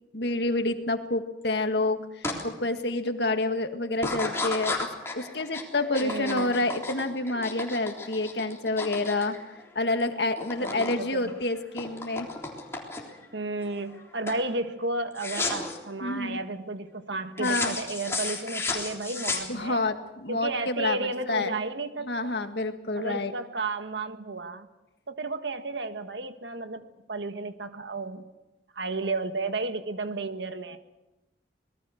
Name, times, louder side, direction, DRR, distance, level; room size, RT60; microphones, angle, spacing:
voice 1, 0.1-4.9 5.1-9.3 9.8-12.3 16.0-16.4 17.4-17.8 19.5-21.6 22.0-23.3, left 2 dB, 70° left, 7 dB, 1.8 m, -28 dB
sound 1, 2.2-2.4 2.9-3.3 3.9-10.0 10.3-11.0 11.3-13.2 13.7-14.0 14.3-14.5 15.2-15.8 17.4-19.9, left 3 dB, 15° left, 3.6 m, -33 dB
voice 2, 6.0-6.5 10.6-11.3 13.3-19.8 20.3-22.3 23.0-24.7 25.1-28.3 28.7-30.8, right 3 dB, 80° right, 8 dB, 1.6 m, -33 dB
26.0 x 20.0 x 6.5 m, 1.0 s
head